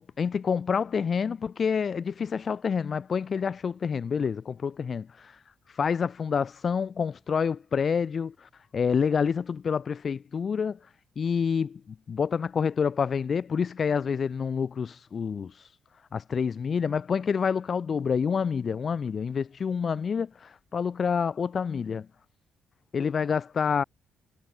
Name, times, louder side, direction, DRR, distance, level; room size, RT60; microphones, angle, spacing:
voice 1, 0.0-5.3 5.8-10.8 11.2-11.8 12.1-15.5 16.1-22.1 22.9-23.8, left 6 dB, 45° left, 2.0 m, -28 dB
cardioid pair, 90°, 0 cm